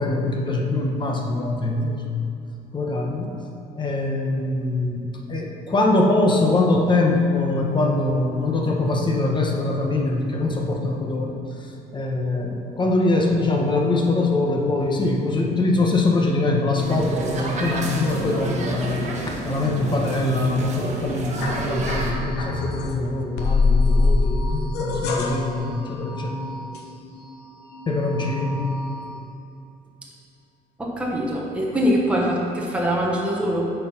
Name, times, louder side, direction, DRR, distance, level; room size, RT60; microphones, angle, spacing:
voice 1, 0.0-2.0 2.7-3.4 3.8-11.3 11.9-24.4 24.8-26.5 27.9-28.8, left 2 dB, 25° left, 0 dB, 1.2 m, -23 dB
sound 1, 16.8-22.1, right 2 dB, 45° right, 1.3 m, -30 dB
sound 2, 21.4-23.0 23.4-27.4 27.7-29.2, left 3 dB, 80° left, 1.0 m, -25 dB
voice 2, 30.8-33.7, equal, 5° right, -3 dB, 1.1 m, -23 dB
8.2 x 4.6 x 5.7 m, 2.7 s
cardioid pair, 110°, 17 cm